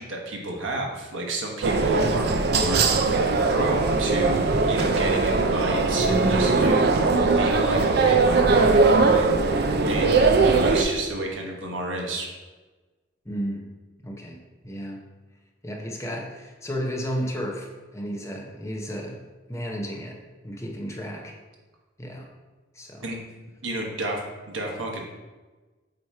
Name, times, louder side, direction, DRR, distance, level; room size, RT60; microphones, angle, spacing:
voice 1, 0.0-12.3 23.0-23.2 23.6-24.2 24.5-25.0, right 1 dB, 90° right, 0 dB, 1.2 m, -31 dB
sound 1, 1.6-10.8, right 3 dB, 55° right, 0.5 m, -20 dB
voice 2, 13.2-13.7 14.0-14.4 14.6-15.0 15.6-19.2 19.5-20.2 20.4-21.3 22.0-22.3 22.7-23.1, equal, 15° left, 1 dB, 0.7 m, -33 dB
7.6 x 2.9 x 4.7 m, 1.3 s
head